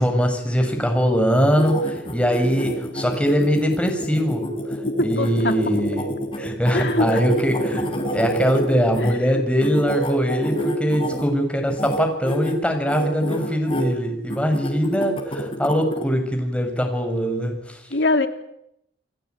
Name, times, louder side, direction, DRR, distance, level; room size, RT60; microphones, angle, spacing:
voice 1, 0.0-4.5 5.0-7.9 8.1-17.8, equal, 5° left, 4 dB, 6.6 m, -22 dB
sound 1, 1.3-9.1 9.6-11.3 11.7-12.0 12.2-12.5 12.9-13.8 14.3-16.0, equal, 30° left, 5.3 m, -27 dB
voice 2, 5.0-5.5 6.7-7.2 8.5-8.6 9.0-9.4 17.9-18.3, left 2 dB, 75° left, 6 dB, 3.6 m, -23 dB
30.0 x 21.0 x 9.6 m, 0.77 s
head